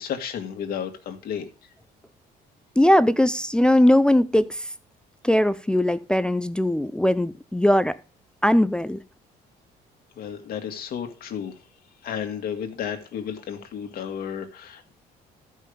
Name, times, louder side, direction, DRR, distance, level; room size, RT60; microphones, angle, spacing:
voice 1, 0.0-1.7 10.2-11.6 12.0-14.9, left 8 dB, 65° left, 1.8 m, -33 dB
voice 2, 2.8-4.7 5.2-8.0 8.4-9.0, left 1 dB, 5° left, 0.4 m, -20 dB
13.0 x 5.6 x 5.1 m
cardioid pair, 110°, 17 cm